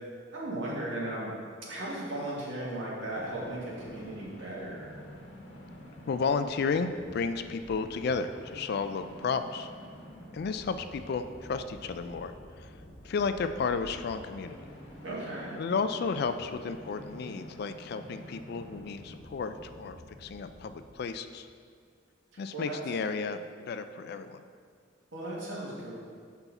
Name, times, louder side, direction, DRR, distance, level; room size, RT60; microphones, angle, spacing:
voice 1, 0.3-1.3 1.6-4.9 15.0-15.5 22.5-22.8 25.1-25.9, right 1 dB, 80° right, -5 dB, 1.9 m, -36 dB
sound 1, 3.1-21.6, equal, 75° left, 1.2 m, -49 dB
voice 2, 6.1-9.7 10.3-12.7 13.0-14.7 15.6-21.5 22.4-24.4, left 5 dB, 55° left, 10 dB, 0.3 m, -33 dB
6.9 x 5.7 x 4.0 m, 2.1 s
head